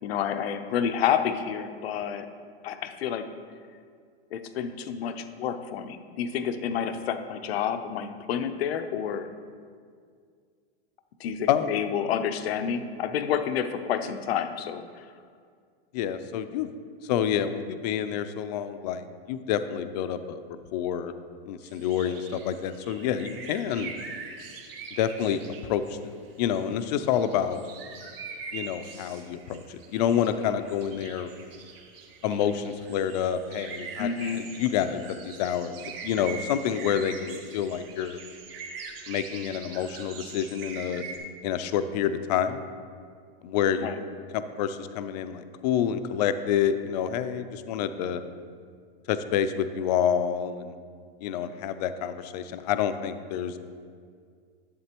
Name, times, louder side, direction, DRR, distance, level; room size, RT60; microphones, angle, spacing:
voice 1, 0.0-2.3 2.6-3.3 4.3-9.3 11.2-15.1 34.0-34.4 43.8-44.0, left 8 dB, 85° left, 9 dB, 0.6 m, -29 dB
voice 2, 15.9-16.7 17.0-20.4 20.7-21.1 21.5-23.9 25.0-25.4 25.7-26.1 26.4-27.6 28.5-31.3 32.2-38.2 39.1-41.0 41.4-42.6 43.4-43.9 44.3-48.2 49.1-50.8 51.2-53.6, left 9 dB, 45° left, 11 dB, 0.4 m, -28 dB
sound 1, 21.6-26.0 26.5-41.2, right 5 dB, 70° right, 1.3 m, -43 dB
11.0 x 7.5 x 2.9 m, 2.1 s
supercardioid pair, 165°, 30 cm